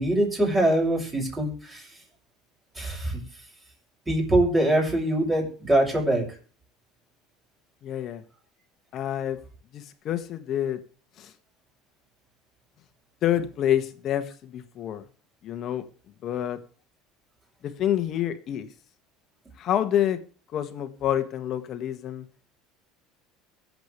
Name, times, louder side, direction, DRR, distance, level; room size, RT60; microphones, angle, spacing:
voice 1, 0.0-1.9 2.8-3.2 4.1-6.2, right 1 dB, 15° right, 6.8 m, -23 dB
voice 2, 7.8-8.2 8.9-9.4 9.7-10.8 11.2-11.3 13.2-15.0 15.4-15.8 16.2-16.6 17.6-18.7 19.6-20.2 20.5-22.3, left 11 dB, 45° left, 1.9 m, -27 dB
23.0 x 8.2 x 3.4 m
cardioid pair, 140°, 0 cm